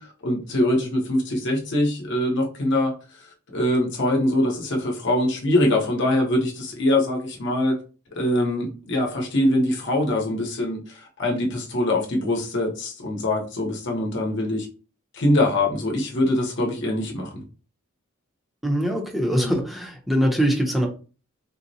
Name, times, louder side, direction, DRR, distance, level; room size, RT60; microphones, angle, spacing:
voice 1, 0.0-2.9 3.5-7.8 8.1-14.7 15.1-17.4 19.3-19.6, left 1 dB, 60° left, 0.9 m, -23 dB
voice 2, 18.6-20.9, equal, ahead, 0.6 m, -22 dB
3.9 x 2.1 x 2.7 m
head